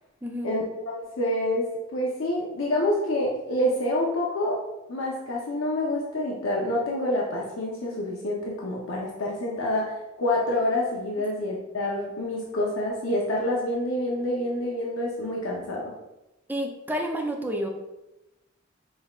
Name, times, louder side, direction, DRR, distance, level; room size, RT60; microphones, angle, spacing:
voice 1, 0.4-1.7 1.9-4.6 4.9-15.9, left 1 dB, 80° left, -2 dB, 0.7 m, -27 dB
voice 2, 16.5-17.7, equal, 10° right, 2 dB, 0.4 m, -29 dB
5.4 x 3.5 x 2.4 m, 0.97 s
head